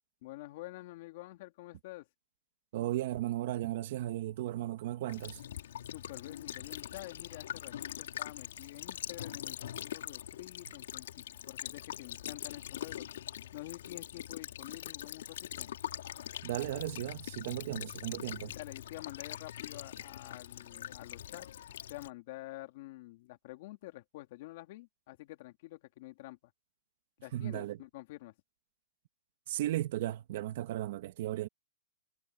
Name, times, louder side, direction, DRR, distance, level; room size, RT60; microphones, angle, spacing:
voice 1, 0.2-2.1 5.9-13.1 13.5-15.7 18.5-21.5 21.9-26.4 27.2-28.3, left 19 dB, 45° left, 3.1 m, -48 dB
voice 2, 2.7-5.4 16.4-18.5 27.3-27.8 29.5-31.5, right 14 dB, 50° right, 1.6 m, -35 dB
Child speech kid speaking / Bird vocalization bird call bird song / Stream, 5.1-22.1, left 11 dB, 70° left, 4.4 m, -43 dB
hypercardioid pair, 160°, 0 cm